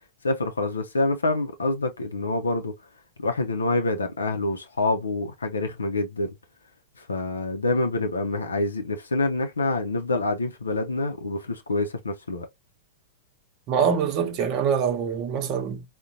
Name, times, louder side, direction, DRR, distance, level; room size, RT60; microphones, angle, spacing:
voice 1, 0.2-2.7 3.2-6.3 7.0-12.5, left 2 dB, 85° left, 0.5 m, -26 dB
voice 2, 13.7-15.8, right 7 dB, 40° right, 0.8 m, -24 dB
3.7 x 2.2 x 2.6 m
hypercardioid pair, 100°, 0 cm